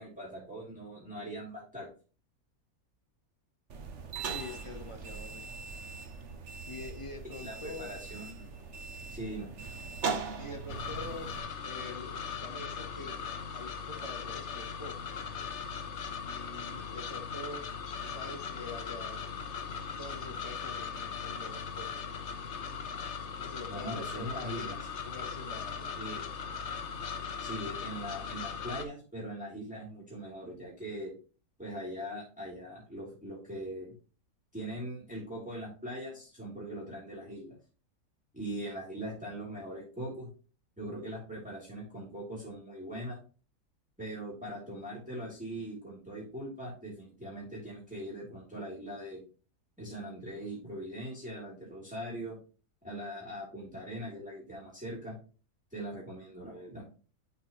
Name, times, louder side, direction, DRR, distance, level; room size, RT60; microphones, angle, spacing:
voice 1, 0.0-1.9 7.4-8.5 9.1-9.5 23.7-24.8 26.0-26.2 27.4-31.1 31.6-33.9 34.5-37.6 38.3-40.3 40.8-43.2 44.0-49.2 49.8-52.4 52.8-55.2 55.7-56.9, right 1 dB, 5° right, -5 dB, 2.9 m, -41 dB
sound 1, 3.7-11.4, right 5 dB, 55° right, 1.2 m, -40 dB
voice 2, 4.2-5.4 6.7-7.9 10.4-13.2 13.5-15.1 16.2-17.7 18.1-19.2 20.0-22.0 23.4-24.7 25.1-26.1, left 2 dB, 25° left, 5 dB, 0.8 m, -45 dB
sound 2, 10.7-28.9, left 6 dB, 55° left, 1.0 m, -39 dB
10.5 x 4.6 x 3.0 m, 0.36 s
omnidirectional pair, 1.6 m